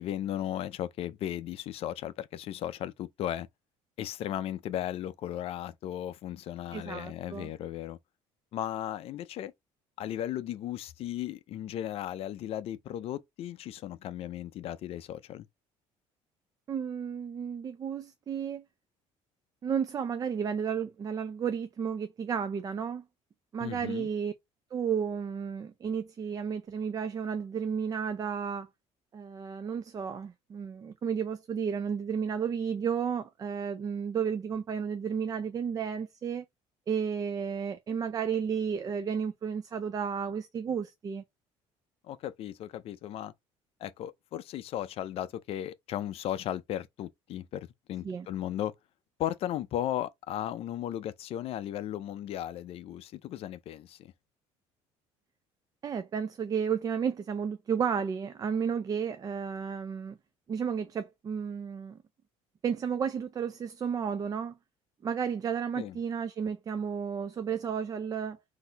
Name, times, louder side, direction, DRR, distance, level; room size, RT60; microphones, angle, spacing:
voice 1, 0.0-3.5 4.0-8.0 8.5-9.5 10.0-15.5 23.6-24.1 42.1-43.3 43.8-48.7 49.2-54.1 65.8-66.0, left 11 dB, 55° left, 0.5 m, -36 dB
voice 2, 6.7-7.5 16.7-18.6 19.6-23.0 23.5-24.3 24.7-28.7 29.1-36.4 36.9-41.2 48.0-48.3 55.8-60.2 60.5-62.0 62.6-64.5 65.0-68.4, right 7 dB, 30° right, 0.5 m, -32 dB
4.0 x 2.6 x 3.9 m
cardioid pair, 130°, 12 cm